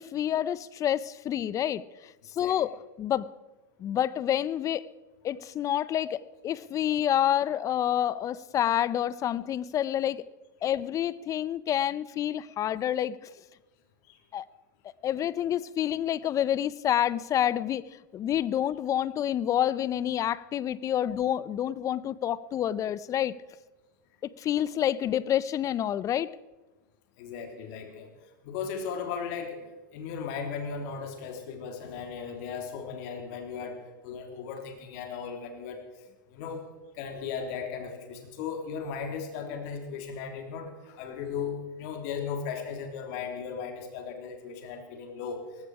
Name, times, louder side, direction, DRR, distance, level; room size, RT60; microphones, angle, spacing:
voice 1, 0.0-2.7 3.0-3.3 3.8-4.8 5.2-10.2 10.6-13.3 14.3-14.4 15.0-17.8 18.1-23.3 24.2-26.3, left 11 dB, 30° left, 19 dB, 0.7 m, -28 dB
voice 2, 27.2-28.1 28.4-29.6 29.9-35.8 36.3-36.6 36.9-45.4, left 6 dB, 55° left, 4 dB, 3.4 m, -36 dB
18.0 x 16.0 x 4.9 m, 1.1 s
hypercardioid pair, 110°, 11 cm